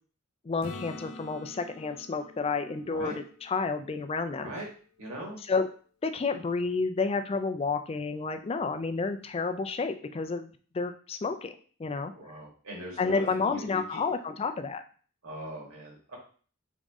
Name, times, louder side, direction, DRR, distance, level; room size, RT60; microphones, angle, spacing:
voice 1, 0.5-3.1 3.4-4.5 5.5-5.7 6.0-10.5 10.7-12.1 13.0-14.8, left 4 dB, 25° left, 8 dB, 0.3 m, -30 dB
Acoustic guitar / Strum, 0.6-4.4 9.2-9.3, left 2 dB, 85° left, 0.6 m, -47 dB
voice 2, 2.8-3.2 4.4-4.7 5.0-5.4 12.1-14.1 15.2-16.2, right 1 dB, 70° right, -3 dB, 1.8 m, -40 dB
3.9 x 3.6 x 3.6 m, 0.43 s
head